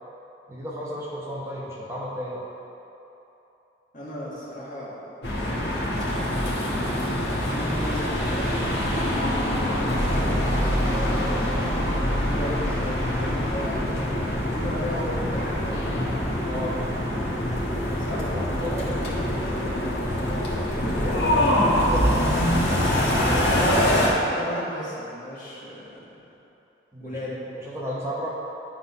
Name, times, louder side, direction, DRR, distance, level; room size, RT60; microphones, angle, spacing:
voice 1, 0.5-2.4 16.5-16.8 18.3-19.7 20.7-21.1 21.4-22.2 26.9-28.3, equal, 15° right, -6 dB, 1.0 m, -34 dB
voice 2, 3.9-5.3 6.2-9.2 10.1-11.4 12.1-13.9 14.3-16.5 18.0-18.3 20.9-21.2 23.2-26.0 27.0-27.4, equal, 45° left, -7 dB, 1.8 m, -35 dB
sound 1, 5.2-24.1, equal, 70° left, 1.4 m, -24 dB
10.5 x 4.0 x 5.3 m, 3.0 s
head